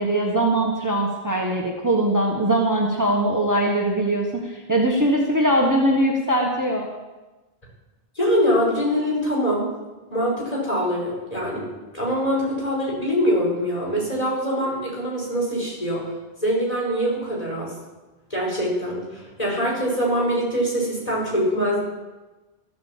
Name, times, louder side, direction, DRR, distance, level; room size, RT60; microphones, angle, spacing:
voice 1, 0.0-6.9, right 1 dB, 20° right, -1 dB, 1.5 m, -21 dB
voice 2, 8.2-9.7 10.1-11.7 11.9-16.1 16.4-17.7 18.3-21.8, equal, 35° left, -4 dB, 5.6 m, -23 dB
14.0 x 8.7 x 7.5 m, 1.2 s
omnidirectional pair, 1.0 m